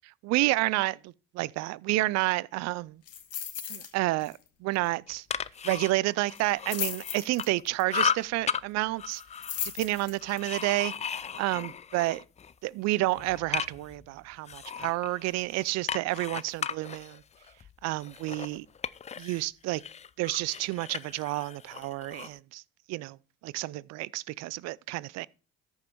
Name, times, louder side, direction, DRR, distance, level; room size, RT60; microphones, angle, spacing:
voice 1, 0.2-3.0 3.7-5.3 5.6-9.2 9.7-12.2 12.6-17.2 17.8-18.7 19.2-19.8 20.2-22.6 22.9-23.2 23.4-25.3, right 19 dB, 60° right, 0.5 m, -30 dB
sound 1, 3.1-3.9 4.2-4.5 4.7-4.8 6.3-7.8 9.1-10.4 10.9-11.0, left 9 dB, 55° left, 1.8 m, -36 dB
sound 2, 5.1-7.6 7.9-8.6 9.0-12.5 12.9-14.0 14.5-19.4 19.8-22.4, left 7 dB, 25° left, 0.4 m, -35 dB
sound 3, 13.1-15.6, left 3 dB, 90° left, 1.8 m, -55 dB
13.5 x 5.4 x 4.6 m
hypercardioid pair, 70°, 29 cm